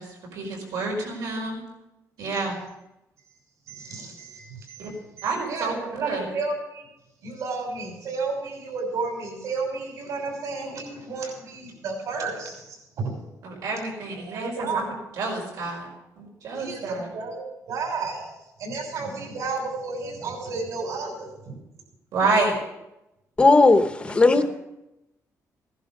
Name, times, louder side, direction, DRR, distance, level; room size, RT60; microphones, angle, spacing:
voice 1, 0.0-1.6 2.2-2.6 4.8-4.9 5.2-6.2 13.4-15.9 16.2-17.1 22.1-22.6 24.0-24.3, right 3 dB, 85° right, 0 dB, 5.1 m, -29 dB
voice 2, 3.7-4.9 5.2-6.9 7.2-13.2 14.1-14.9 16.5-18.3 18.6-21.6, right 4 dB, 70° right, 1 dB, 5.9 m, -32 dB
voice 3, 23.4-24.4, left 3 dB, 15° left, 9 dB, 0.9 m, -16 dB
17.0 x 11.0 x 5.4 m, 0.91 s
cardioid pair, 175°, 6 cm